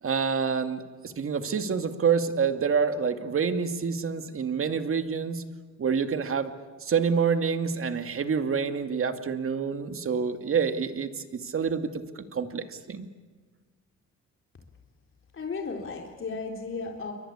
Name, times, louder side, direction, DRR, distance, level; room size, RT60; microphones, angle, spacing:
voice 1, 0.0-5.4 5.8-6.5 6.8-13.1, right 6 dB, 45° right, 8 dB, 2.4 m, -27 dB
voice 2, 15.3-17.1, left 4 dB, 45° left, 1 dB, 3.8 m, -34 dB
29.0 x 23.5 x 8.6 m, 1.4 s
cardioid pair, 90°, 30 cm